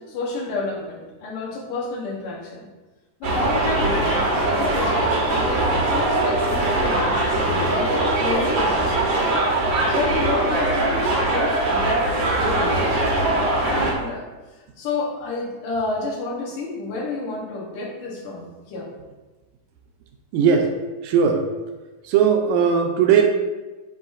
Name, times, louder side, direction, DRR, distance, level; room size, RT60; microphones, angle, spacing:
voice 1, 0.0-2.7 3.2-9.0 9.9-12.9 13.6-18.9, left 3 dB, 85° left, -2 dB, 2.8 m, -30 dB
sound 1, 3.2-13.9, right 2 dB, 60° right, 1.3 m, -21 dB
voice 2, 20.3-20.7 21.0-21.4 22.1-23.2, right 7 dB, 80° right, 3 dB, 1.9 m, -18 dB
9.9 x 3.9 x 2.6 m, 1.2 s
omnidirectional pair, 3.6 m